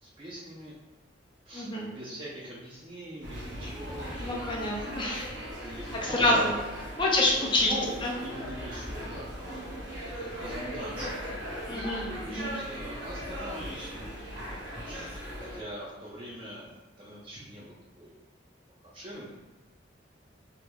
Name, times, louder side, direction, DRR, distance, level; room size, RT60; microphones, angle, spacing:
voice 1, 0.0-0.7 1.5-4.2 4.8-4.9 5.6-5.9 6.2-6.5 6.8-9.3 10.0-11.2 11.6-14.5 14.8-18.1 18.9-19.3, right 1 dB, 25° right, -6 dB, 0.4 m, -41 dB
voice 2, 1.5-1.9 4.2-5.3 6.0-6.5 7.0-7.7 8.0-8.1 11.7-12.0 12.3-12.5, left 2 dB, 25° left, -2 dB, 0.5 m, -27 dB
sound 1, 3.2-15.6, equal, 75° right, 1.0 m, -38 dB
3.4 x 2.3 x 3.0 m, 1.1 s
head